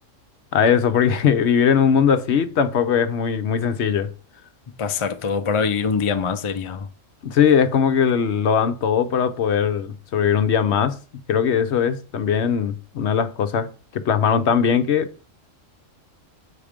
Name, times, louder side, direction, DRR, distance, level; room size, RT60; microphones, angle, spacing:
voice 1, 0.5-4.1 7.2-10.9 11.3-13.7 13.9-15.1, left 7 dB, 65° left, 0.9 m, -20 dB
voice 2, 4.8-6.9, left 5 dB, 40° left, 0.4 m, -24 dB
7.3 x 4.1 x 5.1 m
omnidirectional pair, 1.3 m